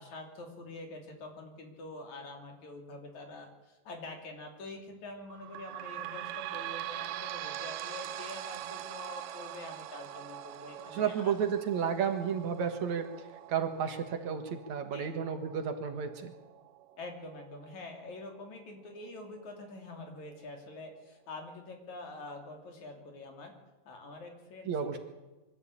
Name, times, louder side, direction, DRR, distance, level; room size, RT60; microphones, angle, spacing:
voice 1, 0.0-11.3 14.9-15.1 17.0-23.5 23.9-25.0, left 2 dB, 60° left, 3 dB, 4.3 m, -46 dB
sound 1, 5.3-18.5 19.0-19.1 19.4-19.5 20.3-20.4, right 13 dB, 80° right, 2.5 m, -43 dB
voice 2, 10.9-16.3 24.7-25.0, right 7 dB, 65° right, 6 dB, 2.7 m, -32 dB
24.0 x 13.5 x 8.6 m, 1.1 s
omnidirectional pair, 3.7 m